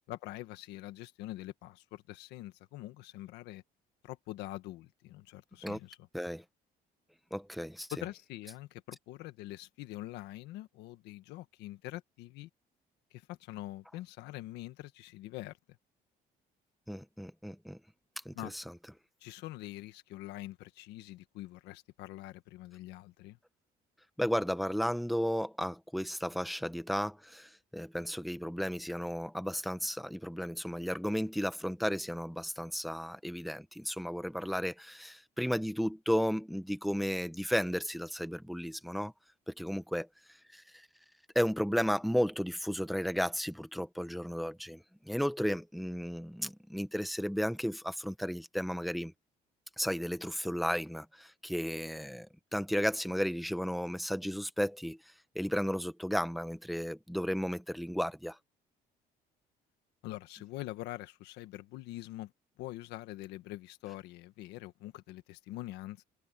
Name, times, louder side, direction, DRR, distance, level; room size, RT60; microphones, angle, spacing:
voice 1, 0.1-3.6 4.0-6.0 7.9-12.5 13.1-15.5 18.3-18.5 19.2-23.4 60.0-62.3 62.6-66.0, left 16 dB, 90° left, 1.5 m, -44 dB
voice 2, 6.1-6.4 7.3-7.9 16.9-17.8 18.2-18.6 24.2-39.1 39.5-40.1 40.5-40.6 41.3-49.1 49.8-52.3 52.5-55.0 55.3-58.4, equal, ahead, 1.1 m, -34 dB
cardioid pair, 110°, 17 cm